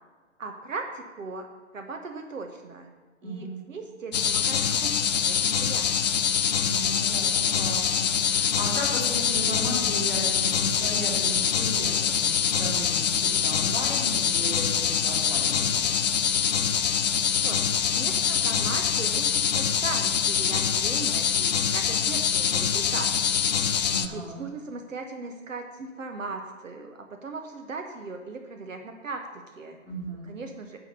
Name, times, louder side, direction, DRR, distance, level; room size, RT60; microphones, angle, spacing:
voice 1, 0.4-1.5 1.7-2.9 3.2-6.0 17.3-23.1 24.1-29.8 30.2-30.8, right 3 dB, 75° right, 4 dB, 1.1 m, -38 dB
voice 2, 3.2-3.6 6.6-16.1 23.8-24.5 29.8-30.3, right 1 dB, 15° right, -5 dB, 3.1 m, -35 dB
sound 1, 4.1-24.1, left 8 dB, 35° left, 0.4 m, -24 dB
11.0 x 5.0 x 6.6 m, 1.4 s
figure-of-eight pair, 130°, 40 cm